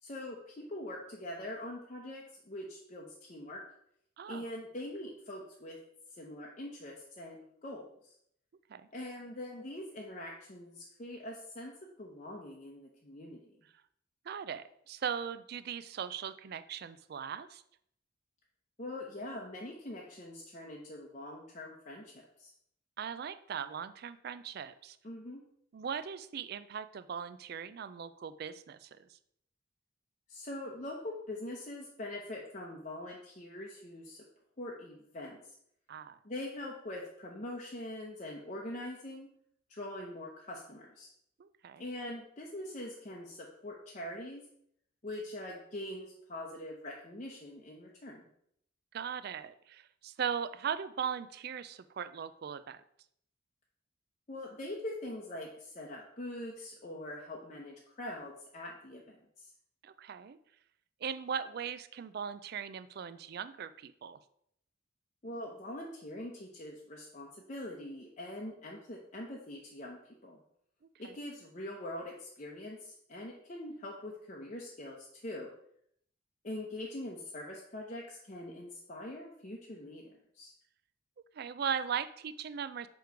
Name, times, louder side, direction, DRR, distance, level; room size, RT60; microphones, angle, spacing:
voice 1, 0.0-3.6 4.3-5.8 6.1-7.9 8.9-11.7 12.0-13.4 18.8-22.5 25.0-25.4 30.3-34.2 34.6-35.4 36.2-39.3 39.7-41.1 41.8-44.4 45.0-48.2 54.3-59.5 65.2-70.4 71.0-75.5 76.4-80.5, left 1 dB, 35° left, -3 dB, 0.7 m, -43 dB
voice 2, 4.2-4.5 8.7-8.8 14.3-17.6 23.0-25.0 25.7-29.1 35.9-36.2 41.4-41.8 48.9-52.8 59.8-60.4 61.0-64.2 71.0-71.2 81.3-82.9, right 7 dB, 50° right, 13 dB, 0.3 m, -39 dB
7.1 x 3.1 x 4.5 m, 0.70 s
head